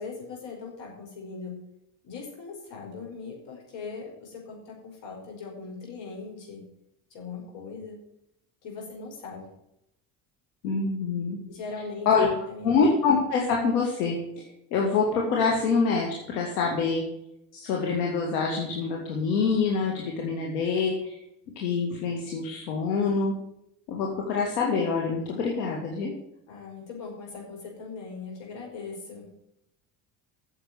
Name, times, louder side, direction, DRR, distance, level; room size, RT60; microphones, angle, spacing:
voice 1, 0.0-1.5 2.0-6.6 7.1-8.0 8.6-9.5 11.5-12.8 26.5-29.3, left 4 dB, 65° left, 0 dB, 5.3 m, -40 dB
voice 2, 10.6-11.4 12.1-12.3 12.6-17.0 17.5-21.2 21.6-23.4 23.9-26.1, left 5 dB, 90° left, 0 dB, 2.1 m, -26 dB
8.9 x 7.3 x 8.3 m, 0.81 s
hypercardioid pair, 70°, 47 cm